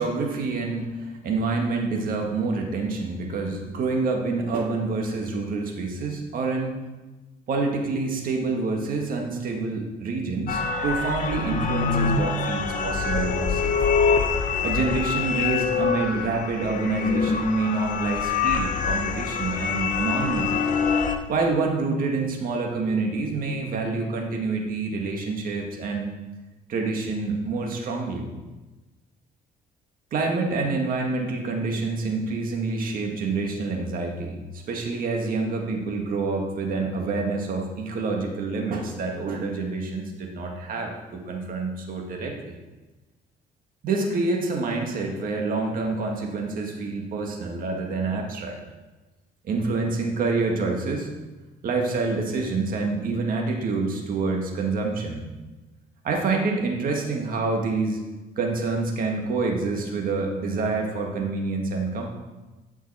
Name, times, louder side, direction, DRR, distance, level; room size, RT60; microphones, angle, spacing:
voice 1, 0.0-6.7 7.5-13.8 14.6-20.6 21.3-26.1 26.7-28.3 30.1-42.6 43.8-48.6 49.4-51.1 51.6-55.2 56.0-58.0 58.4-62.1, right 3 dB, 55° right, 2 dB, 1.9 m, -27 dB
sound 1, 10.5-21.1, left 5 dB, 50° left, 1.0 m, -25 dB
13.5 x 5.9 x 4.3 m, 1.1 s
cardioid pair, 110°, 17 cm